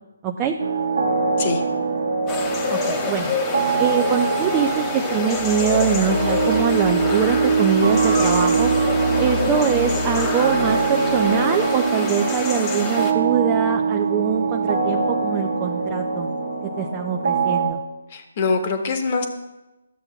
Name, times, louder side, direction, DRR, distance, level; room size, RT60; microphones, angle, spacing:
voice 1, 0.2-0.6 2.7-3.3 3.8-8.7 9.2-16.3 16.6-17.8, right 7 dB, 20° right, 3 dB, 0.5 m, -23 dB
sound 1, 0.6-17.7, right 5 dB, 55° right, 1.1 m, -23 dB
sound 2, 2.3-13.1, left 3 dB, 15° left, 1.1 m, -27 dB
sound 3, 5.2-11.9, left 4 dB, 80° right, 0.8 m, -32 dB
voice 2, 18.1-19.2, left 4 dB, 35° left, 5 dB, 1.2 m, -23 dB
13.5 x 7.7 x 2.3 m, 1.0 s
figure-of-eight pair, 145°, 0 cm